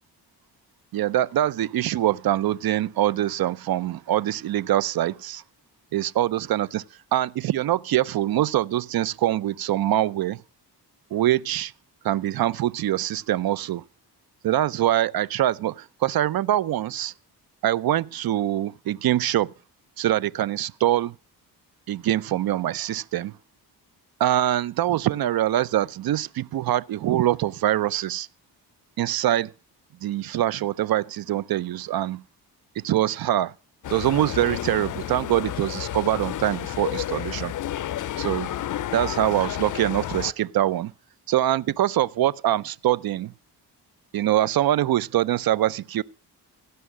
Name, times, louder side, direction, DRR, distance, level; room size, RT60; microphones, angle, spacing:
voice 1, 0.9-5.4 5.9-6.8 7.1-10.4 11.1-11.7 12.1-13.8 14.4-17.1 17.6-19.5 20.0-21.1 21.9-23.3 24.2-28.3 29.0-29.5 30.0-32.2 32.8-33.5 33.9-37.5 38.2-38.5 38.9-40.9 41.3-43.3 44.1-46.0, right 13 dB, 60° right, 0.5 m, -24 dB
sound 1, 33.8-40.3, left 12 dB, 50° left, 0.5 m, -31 dB
16.0 x 5.7 x 7.5 m
cardioid pair, 90°, 41 cm